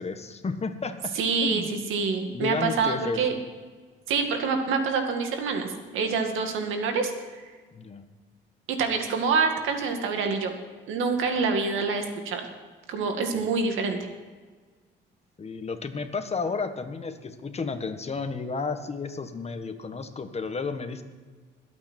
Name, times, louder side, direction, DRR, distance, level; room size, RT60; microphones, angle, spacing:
voice 1, 0.0-1.1 1.4-1.7 2.3-3.4 7.7-8.0 13.3-13.5 15.4-21.0, left 4 dB, 30° left, 8 dB, 1.5 m, -32 dB
voice 2, 1.2-3.3 4.1-7.1 7.4-7.5 8.7-10.5 10.9-12.4 12.9-14.0, right 5 dB, 85° right, 5 dB, 2.2 m, -26 dB
22.0 x 8.7 x 4.5 m, 1.4 s
cardioid pair, 90°, 20 cm